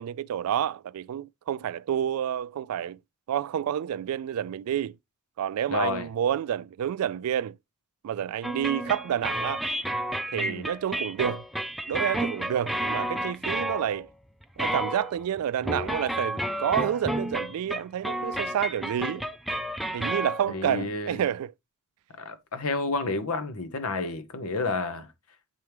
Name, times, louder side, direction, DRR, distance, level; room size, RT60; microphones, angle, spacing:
voice 1, 0.0-3.0 3.3-4.9 5.4-7.5 8.0-9.6 10.3-11.4 11.9-14.1 14.6-19.2 19.9-21.5, right 9 dB, 75° right, 0.3 m, -29 dB
voice 2, 5.7-6.1 10.3-10.7 20.5-21.2 22.2-25.1, left 3 dB, 75° left, 1.0 m, -30 dB
sound 1, 8.4-14.1 14.4-20.6, right 1 dB, ahead, 0.5 m, -31 dB
7.4 x 4.6 x 3.3 m
head